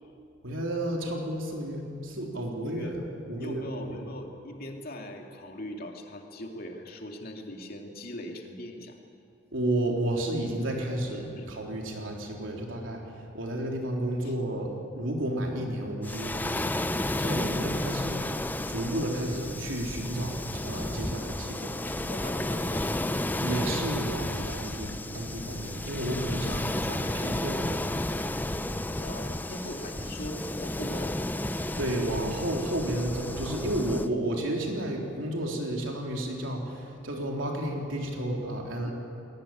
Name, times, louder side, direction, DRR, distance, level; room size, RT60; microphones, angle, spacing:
voice 1, 0.4-3.0 3.3-4.0 9.5-21.8 23.4-27.9 31.8-38.9, right 1 dB, 75° right, 0 dB, 3.7 m, -32 dB
voice 2, 2.6-3.0 3.3-9.0 10.8-10.9 11.3-11.5 14.2-14.3 22.1-23.3 29.0-31.2 38.8-38.9, left 1 dB, 50° left, 2 dB, 2.6 m, -40 dB
Waves surf, 16.0-34.1, left 1 dB, 10° left, 0.5 m, -32 dB
21.5 x 18.0 x 8.9 m, 2.5 s
head